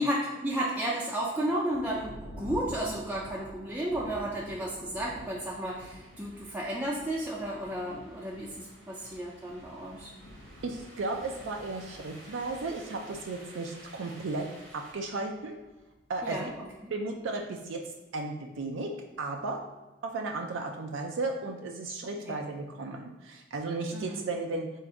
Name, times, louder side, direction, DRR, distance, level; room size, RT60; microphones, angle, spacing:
voice 1, 0.0-10.1 16.2-16.5 16.8-16.9 22.3-22.4 23.9-24.2, right 1 dB, 10° right, -5 dB, 0.4 m, -33 dB
Thunder, 1.7-17.7 18.5-18.6 19.1-19.6, left 1 dB, 70° left, 0.5 m, -50 dB
sound 1, 5.1-14.9, right 1 dB, 85° right, 1.3 m, -54 dB
voice 2, 10.6-15.6 16.1-16.5 16.9-17.8 18.1-18.9 19.2-19.6 20.0-24.7, right 3 dB, 70° right, 2 dB, 0.4 m, -34 dB
3.6 x 2.5 x 4.4 m, 1.1 s
head